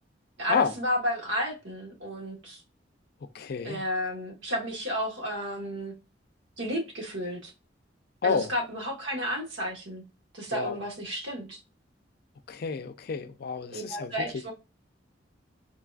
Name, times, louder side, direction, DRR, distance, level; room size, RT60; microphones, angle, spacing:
voice 1, 0.4-2.6 3.6-5.9 6.6-7.5 8.2-10.0 10.3-11.6 13.7-14.5, equal, 85° right, 1.3 m, -32 dB
voice 2, 3.3-3.8 8.2-8.5 10.5-10.8 12.5-14.1, left 5 dB, 55° left, 0.4 m, -29 dB
3.8 x 2.4 x 2.3 m
head